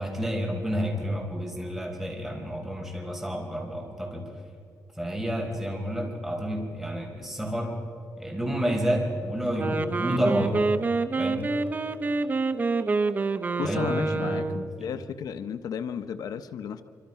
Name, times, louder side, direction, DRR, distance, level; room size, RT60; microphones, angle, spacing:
voice 1, 0.0-4.3 5.0-7.7 8.2-10.6 11.2-11.5 13.6-14.9, equal, 5° right, 0 dB, 4.8 m, -30 dB
Wind instrument woodwind instrument, 9.5-14.7, right 3 dB, 30° right, 0.9 m, -27 dB
voice 2, 13.6-16.8, left 7 dB, 75° left, 11 dB, 0.8 m, -33 dB
26.0 x 25.0 x 5.8 m, 2.4 s
cardioid pair, 135°, 7 cm